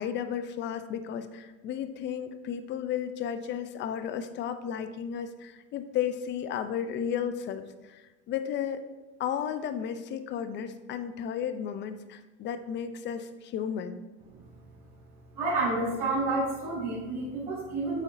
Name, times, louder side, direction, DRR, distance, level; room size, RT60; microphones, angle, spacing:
voice 1, 0.0-8.8 9.2-14.0, left 8 dB, 30° left, 10 dB, 0.5 m, -33 dB
voice 2, 15.4-18.0, right 2 dB, 45° right, -8 dB, 2.3 m, -29 dB
9.1 x 7.0 x 2.6 m, 1.1 s
supercardioid pair, 120°, 39 cm